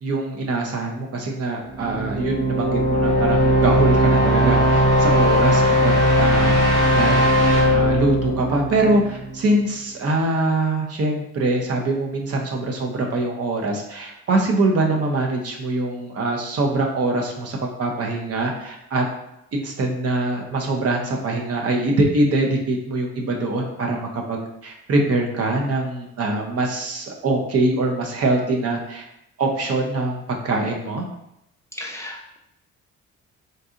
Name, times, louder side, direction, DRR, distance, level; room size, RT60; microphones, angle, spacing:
voice 1, 0.0-6.6 6.9-7.2 7.7-19.0 19.5-29.0 29.4-31.0, right 2 dB, 55° right, 1 dB, 0.7 m, -23 dB
sound 1, 1.7-9.6, equal, 70° right, 1.0 m, -18 dB
voice 2, 31.8-32.4, left 1 dB, 10° left, -2 dB, 0.5 m, -35 dB
4.0 x 2.6 x 2.4 m, 0.81 s
cardioid pair, 90°, 30 cm